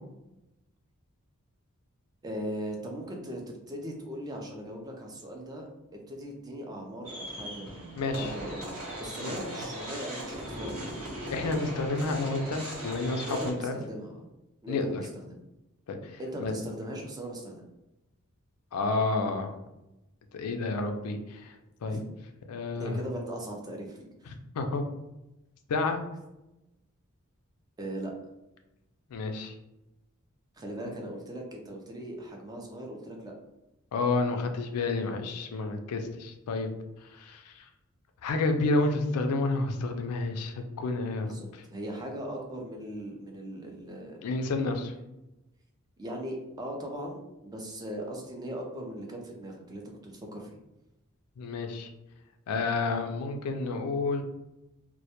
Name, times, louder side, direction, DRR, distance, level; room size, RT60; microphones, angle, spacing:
voice 1, 2.2-5.7 6.1-8.7 9.0-10.9 13.2-14.3 14.6-15.1 16.2-17.7 21.9-22.0 22.8-24.1 27.8-28.1 30.5-33.3 41.2-44.2 46.0-50.5, equal, 15° right, 1 dB, 0.3 m, -39 dB
sound 1, 7.0-13.5, right 1 dB, 70° right, 0.8 m, -39 dB
voice 2, 8.0-8.3 9.2-9.4 11.3-13.8 14.7-15.0 15.9-16.5 18.7-19.5 20.3-21.6 21.8-22.0 22.5-23.0 24.5-24.8 25.7-26.0 29.1-29.5 33.9-36.7 37.1-37.7 38.2-41.3 41.5-41.6 44.2-44.9 51.4-51.9 52.5-54.2, left 3 dB, 90° left, 6 dB, 0.4 m, -30 dB
2.1 x 2.1 x 2.8 m, 0.95 s
head